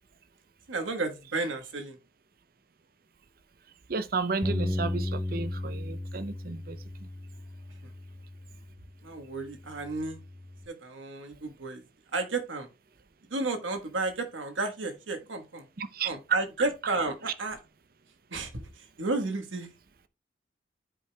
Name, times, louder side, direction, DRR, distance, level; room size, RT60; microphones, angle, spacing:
voice 1, 0.7-2.0 7.8-7.9 9.0-10.2 10.7-11.8 12.1-12.7 13.2-15.6 16.0-17.6 18.3-19.7, right 3 dB, 90° right, 1.3 m, -32 dB
voice 2, 3.9-7.1 15.8-16.4, right 5 dB, 50° right, 0.6 m, -32 dB
Bass guitar, 4.4-8.9 9.5-10.7, left 1 dB, 10° left, 0.4 m, -35 dB
12.5 x 5.1 x 2.2 m
head